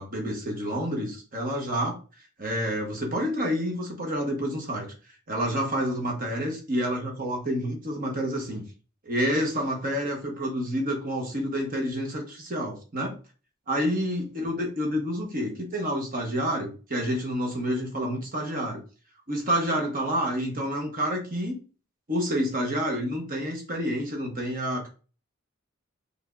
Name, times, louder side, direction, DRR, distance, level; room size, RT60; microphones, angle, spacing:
voice 1, 0.0-2.0 2.4-4.9 5.3-8.6 9.0-13.1 13.7-18.8 19.3-21.6 22.1-24.9, equal, 40° right, 2 dB, 1.1 m, -28 dB
4.3 x 3.4 x 2.5 m, 0.35 s
head